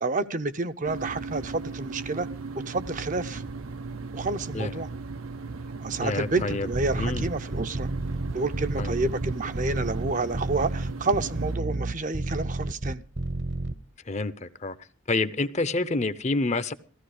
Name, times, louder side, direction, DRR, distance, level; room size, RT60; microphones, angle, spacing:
voice 1, 0.0-2.3 2.7-3.4 4.1-4.9 5.8-7.9 8.3-13.0, right 3 dB, 40° right, 0.6 m, -29 dB
sound 1, 0.9-11.6, right 3 dB, 90° right, 0.9 m, -37 dB
voice 2, 6.0-6.7 6.9-7.3 8.8-9.0 14.1-14.8 15.1-16.7, left 3 dB, 35° left, 0.7 m, -28 dB
sound 2, 6.7-13.7, right 2 dB, 55° right, 1.1 m, -30 dB
15.5 x 14.5 x 4.9 m
head